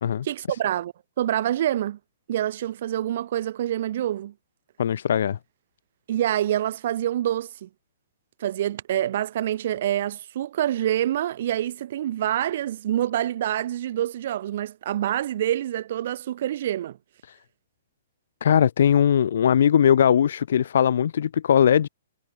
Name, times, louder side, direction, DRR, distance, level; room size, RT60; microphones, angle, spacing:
voice 1, 0.2-2.0 2.3-4.3 6.1-7.7 8.4-17.0, right 12 dB, 45° right, 7.3 m, -26 dB
voice 2, 4.8-5.4 17.3-17.4 18.4-21.9, left 9 dB, 65° left, 1.1 m, -20 dB
hypercardioid pair, 170°, 0 cm